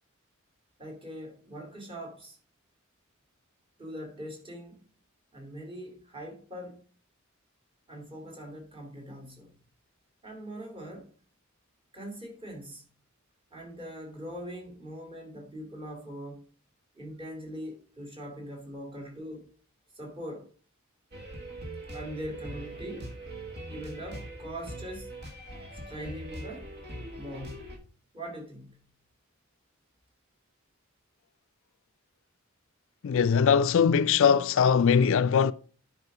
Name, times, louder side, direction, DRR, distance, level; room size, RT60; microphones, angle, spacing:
voice 1, 0.8-2.4 3.8-4.8 5.3-6.9 7.9-9.6 10.2-11.1 11.9-12.8 13.5-16.5 16.9-19.5 19.9-20.5 21.9-23.1 23.7-25.1 25.9-26.7 27.2-28.9, equal, 25° right, 2.6 m, -42 dB
sound 1, 21.1-27.8, right 1 dB, 50° right, 1.8 m, -41 dB
voice 2, 33.0-35.5, left 6 dB, 65° left, 0.4 m, -21 dB
9.6 x 5.0 x 4.8 m
head